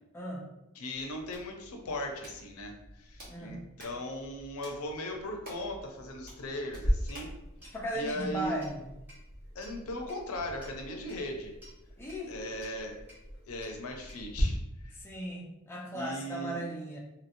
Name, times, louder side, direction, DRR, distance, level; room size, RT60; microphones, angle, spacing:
voice 1, 0.8-7.3 7.9-8.5 9.5-11.5 12.3-13.0 13.5-15.0 15.9-16.6, left 1 dB, 70° left, 3 dB, 0.5 m, -38 dB
Hands, 0.9-7.4, equal, 40° right, 1.0 m, -52 dB
voice 2, 3.3-3.6 7.7-8.8 12.0-12.3 15.0-17.0, equal, 10° left, -3 dB, 0.4 m, -37 dB
Clock, 6.7-14.4, equal, 10° right, 1.1 m, -39 dB
2.9 x 2.8 x 2.5 m, 0.89 s
head